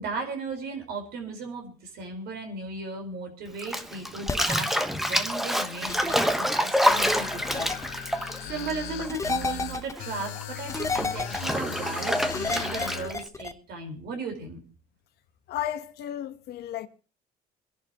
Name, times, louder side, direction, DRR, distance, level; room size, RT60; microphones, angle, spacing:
voice 1, 0.0-7.7 8.5-14.6, right 3 dB, 75° right, 4.6 m, -36 dB
Bathtub (filling or washing), 3.6-9.4 9.7-13.3, equal, ahead, 1.1 m, -27 dB
sound 1, 4.3-4.6 5.9-6.1 7.5-7.8 9.1-9.9 10.7-11.5 12.3-13.5, left 4 dB, 15° left, 0.8 m, -31 dB
sound 2, 6.9-13.1, left 7 dB, 90° left, 2.4 m, -38 dB
voice 2, 15.5-16.9, left 11 dB, 75° left, 1.2 m, -33 dB
26.5 x 11.0 x 3.0 m
cardioid pair, 110°, 17 cm